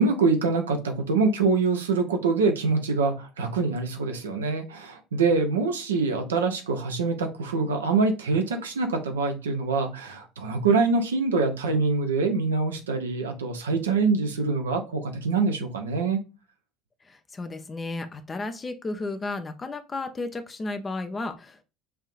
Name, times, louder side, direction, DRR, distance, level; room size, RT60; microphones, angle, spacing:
voice 1, 0.0-16.2, right 4 dB, 75° right, 0.8 m, -25 dB
voice 2, 17.0-21.6, left 2 dB, 25° left, 0.6 m, -33 dB
5.6 x 2.7 x 2.5 m
figure-of-eight pair, 65°, 0 cm